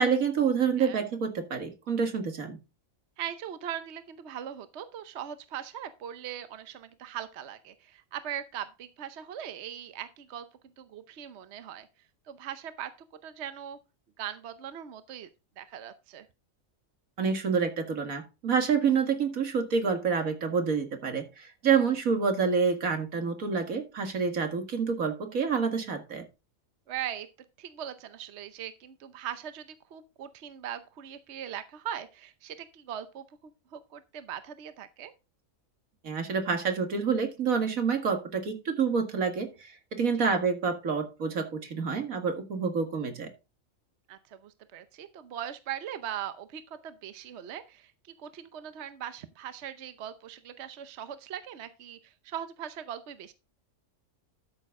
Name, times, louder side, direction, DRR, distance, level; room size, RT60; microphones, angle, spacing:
voice 1, 0.0-2.6 17.2-26.3 36.0-43.3, right 5 dB, 85° right, 2.2 m, -28 dB
voice 2, 3.2-10.5 10.8-11.9 12.3-12.9 13.2-13.8 14.2-15.3 15.6-16.3 26.9-27.3 27.6-35.1 40.2-40.4 44.1-47.9 48.2-53.3, right 10 dB, 60° right, 1.0 m, -40 dB
12.5 x 6.5 x 3.6 m
omnidirectional pair, 1.4 m